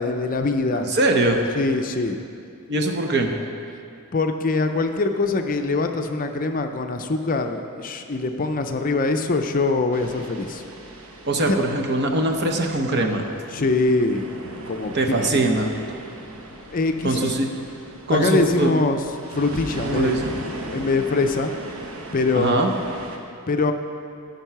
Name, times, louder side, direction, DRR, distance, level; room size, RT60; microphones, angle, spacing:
voice 1, 0.0-0.9 1.5-2.2 4.1-10.6 11.5-11.6 13.5-14.3 14.6-14.9 15.2-15.5 16.7-17.3 18.1-19.0 19.3-20.4 20.7-21.5 22.1-22.7 23.5-23.7, left 3 dB, 40° left, 6 dB, 0.5 m, -23 dB
voice 2, 0.7-1.4 2.7-3.3 11.3-13.3 14.9-15.7 17.0-17.5 18.1-18.7 19.8-20.3 22.3-22.7, right 2 dB, 50° right, 3 dB, 0.8 m, -22 dB
sound 1, 9.9-23.2, right 1 dB, 75° right, 1.0 m, -38 dB
14.0 x 5.4 x 5.7 m, 2.5 s
head